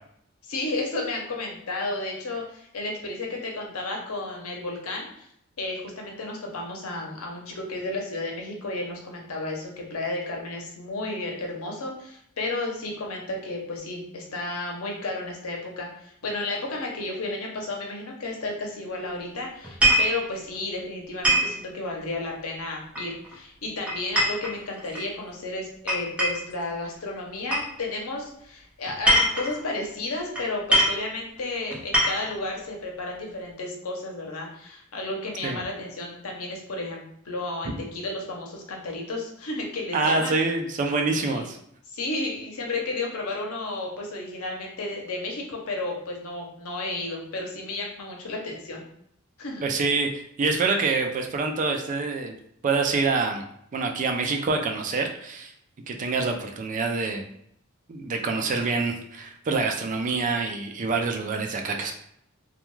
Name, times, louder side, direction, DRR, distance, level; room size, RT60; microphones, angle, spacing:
voice 1, 0.5-5.3 5.6-40.3 41.2-41.4 41.9-48.8 49.4-49.7, left 2 dB, 80° left, 0 dB, 0.7 m, -32 dB
sound 1, 19.6-20.2 21.2-21.6 23.0-23.3 23.9-25.1 25.9-26.5 27.5-27.7 28.9-29.6 30.4-30.5 30.7-31.0 31.7-32.4, equal, 5° right, 0.7 m, -22 dB
voice 2, 39.9-41.6 49.6-52.4 52.6-53.4 53.7-55.5 55.9-57.2 57.9-61.9, right 4 dB, 35° right, 3 dB, 0.4 m, -26 dB
2.3 x 2.2 x 3.0 m, 0.73 s
head